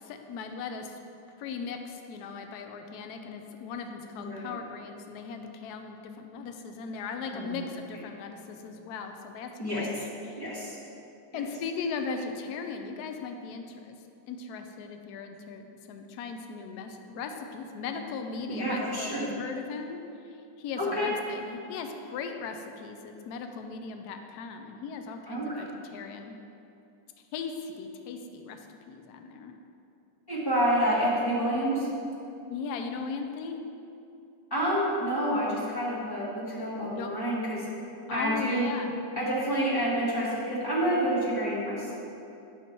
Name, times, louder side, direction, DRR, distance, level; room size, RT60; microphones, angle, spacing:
voice 1, 0.0-1.0 1.4-10.4 11.3-13.9 14.3-20.0 20.6-26.3 27.3-29.5 32.5-33.6 36.9-37.1 38.1-38.9, left 5 dB, 75° left, 5 dB, 0.9 m, -38 dB
voice 2, 10.4-10.8 11.3-11.4 18.5-19.3 20.8-21.1 25.3-25.6 30.3-31.9 34.5-37.7 38.1-38.7 39.2-41.9, equal, 15° left, -7 dB, 1.4 m, -28 dB
8.5 x 7.0 x 2.9 m, 2.7 s
omnidirectional pair, 2.2 m